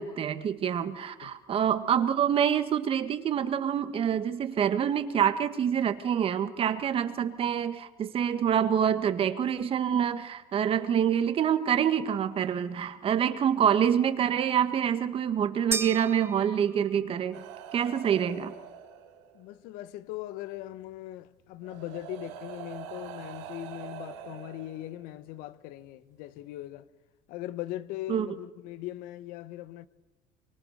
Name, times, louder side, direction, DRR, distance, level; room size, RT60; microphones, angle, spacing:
voice 1, 0.0-17.4 17.7-18.6 28.1-28.3, right 8 dB, 40° right, 1.8 m, -26 dB
sound 1, 15.7-17.2, right 4 dB, 15° right, 0.8 m, -35 dB
sound 2, 17.3-19.5 20.8-20.9 21.6-25.3 26.3-26.5, right 9 dB, 90° right, 4.5 m, -44 dB
voice 2, 19.3-26.9 27.3-29.9, left 15 dB, 70° left, 1.3 m, -40 dB
26.5 x 24.0 x 6.7 m
cardioid pair, 125°, 15 cm